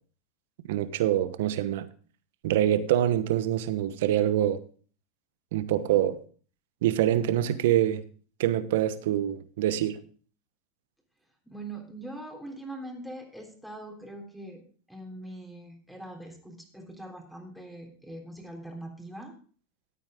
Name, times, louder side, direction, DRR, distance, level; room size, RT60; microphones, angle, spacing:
voice 1, 0.7-1.9 2.4-4.6 5.5-6.2 6.8-8.0 8.4-10.0, right 11 dB, 70° right, 1.1 m, -25 dB
voice 2, 11.4-14.6 14.9-19.3, right 1 dB, ahead, 3.5 m, -42 dB
13.5 x 8.9 x 3.7 m
hypercardioid pair, 105°, 0 cm